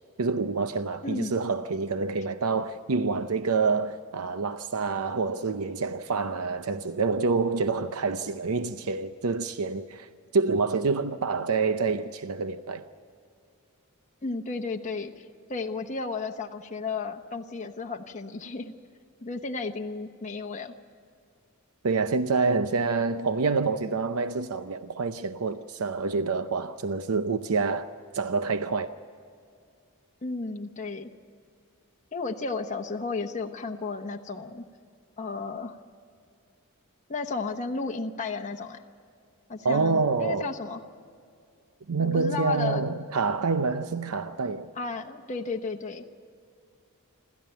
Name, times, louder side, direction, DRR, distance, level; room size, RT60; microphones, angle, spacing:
voice 1, 0.2-12.8 21.8-27.9 28.1-28.9 39.6-40.5 41.9-44.7, right 4 dB, 85° right, 0.7 m, -27 dB
voice 2, 1.0-1.4 14.2-18.7 19.2-20.7 30.2-31.1 32.1-34.6 35.2-35.8 37.1-38.8 39.5-40.8 42.0-43.0 44.8-46.0, left 4 dB, 35° left, 1.0 m, -33 dB
27.5 x 13.5 x 9.2 m
head